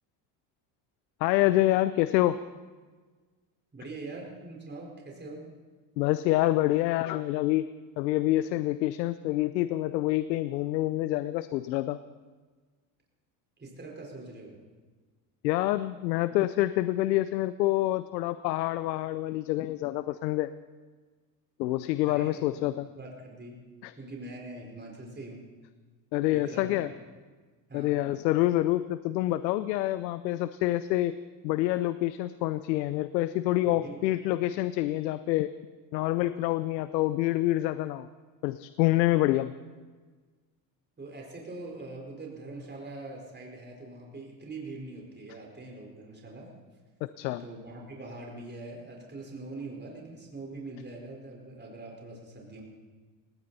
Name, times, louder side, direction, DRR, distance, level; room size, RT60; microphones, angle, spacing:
voice 1, 1.2-2.4 6.0-7.7 8.0-12.0 15.4-20.5 21.6-22.9 23.8-23.9 26.1-26.9 27.7-31.1 31.4-35.5 35.9-38.1 38.4-39.5 47.2-47.4, left 16 dB, 85° left, 14 dB, 0.7 m, -27 dB
voice 2, 3.7-5.4 13.6-14.6 22.0-22.6 22.9-23.6 24.0-25.5 26.3-26.9 27.7-28.1 33.6-34.4 41.0-46.5 47.4-52.6, right 2 dB, 20° right, -1 dB, 4.7 m, -43 dB
18.5 x 17.5 x 4.2 m, 1.4 s
hypercardioid pair, 80°, 50 cm